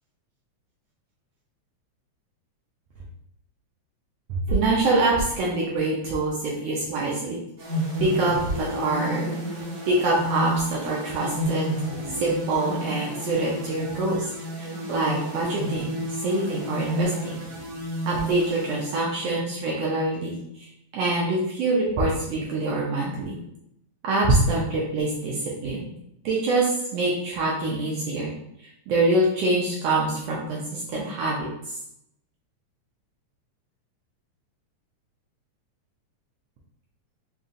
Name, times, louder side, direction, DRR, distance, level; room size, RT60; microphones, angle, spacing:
voice 1, 4.3-7.4 8.0-9.3 9.9-11.7 12.2-14.3 14.6-17.4 18.1-20.4 20.9-23.4 24.0-25.9 26.2-28.3 28.9-31.8, right 2 dB, 75° right, -3 dB, 1.6 m, -25 dB
sound 1, 7.6-19.4, right 1 dB, 50° right, 1.2 m, -31 dB
5.3 x 2.8 x 2.5 m, 0.77 s
omnidirectional pair, 3.4 m